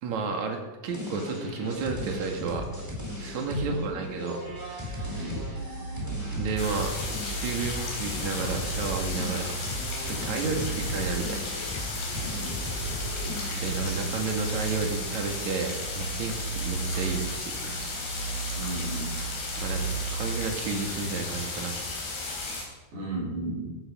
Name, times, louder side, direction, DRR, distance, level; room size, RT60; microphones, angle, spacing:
voice 1, 0.0-2.7 3.2-5.3 6.3-6.9 7.2-9.5 10.1-11.4 13.5-17.8 19.6-21.8, right 4 dB, 55° right, 3 dB, 2.8 m, -32 dB
sound 1, 0.8-13.6, left 1 dB, 5° right, 3.1 m, -36 dB
voice 2, 3.6-4.0 5.1-5.3 10.4-10.5 12.3-12.6 18.5-19.2 22.9-23.7, right 2 dB, 85° right, -3 dB, 7.3 m, -35 dB
sound 2, 4.4-20.5, right 5 dB, 40° left, 2.7 m, -37 dB
sound 3, 6.6-22.6, left 3 dB, 80° left, 5.6 m, -35 dB
15.0 x 11.5 x 5.1 m, 1.2 s
omnidirectional pair, 4.7 m